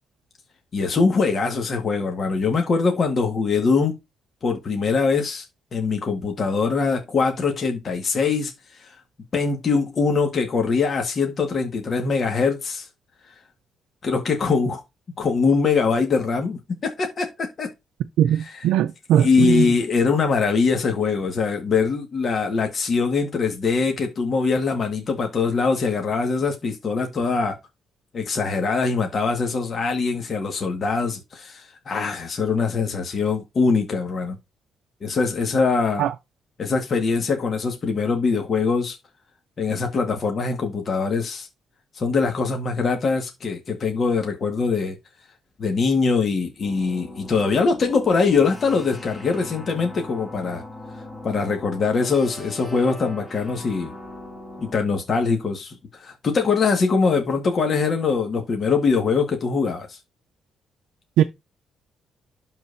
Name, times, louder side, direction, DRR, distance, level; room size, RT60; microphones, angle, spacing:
voice 1, 0.7-3.9 4.4-5.4 5.7-8.9 9.3-12.9 14.0-14.8 15.2-17.7 19.2-27.6 28.1-34.4 35.0-36.1 36.6-39.0 39.6-41.5 41.9-45.0 45.6-50.6 51.2-53.9 54.6-60.0, left 4 dB, 45° left, 1.7 m, -22 dB
voice 2, 18.2-19.7 36.0-36.1 61.2-61.3, right 11 dB, 90° right, 0.5 m, -20 dB
sound 1, 46.6-54.7, left 1 dB, 20° left, 2.9 m, -39 dB
12.0 x 4.1 x 2.7 m
cardioid pair, 90°, 0 cm